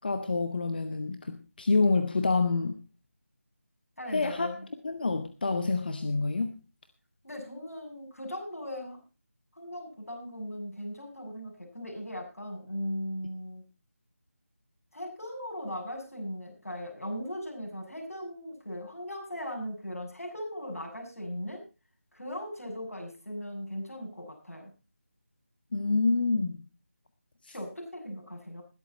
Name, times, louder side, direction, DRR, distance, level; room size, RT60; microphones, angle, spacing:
voice 1, 0.0-2.8 4.1-4.5 4.8-6.5 25.7-26.6 27.4-27.5, left 3 dB, 40° left, 9 dB, 0.9 m, -27 dB
voice 2, 4.0-4.7 7.2-9.0 9.6-13.7 14.9-21.6 22.1-24.7 27.5-28.6, equal, 75° left, 1 dB, 7.3 m, -38 dB
20.5 x 8.1 x 4.2 m, 0.32 s
figure-of-eight pair, 160°, 8 cm